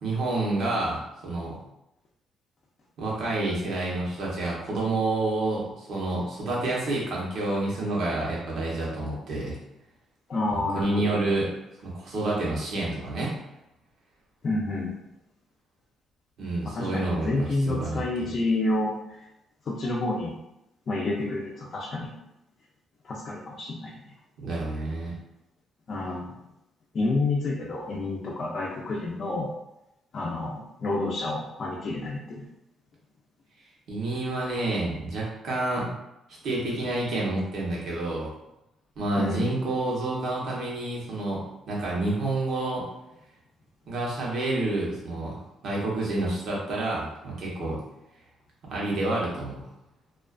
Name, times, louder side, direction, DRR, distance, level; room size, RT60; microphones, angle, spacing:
voice 1, 0.0-1.6 3.0-9.6 10.5-11.5 11.8-13.4 16.4-18.0 24.4-25.1 33.9-35.9 36.4-38.3 39.0-42.8 43.9-47.8 48.6-49.6, right 2 dB, 70° right, -4 dB, 0.9 m, -29 dB
voice 2, 10.3-11.2 14.4-14.9 16.7-19.2 19.7-20.3 20.9-22.1 23.0-24.0 25.9-26.3 26.9-29.5 30.1-32.5 39.2-39.4, left 2 dB, 50° left, -4 dB, 0.5 m, -29 dB
2.3 x 2.3 x 2.3 m, 0.87 s
cardioid pair, 90°, 0 cm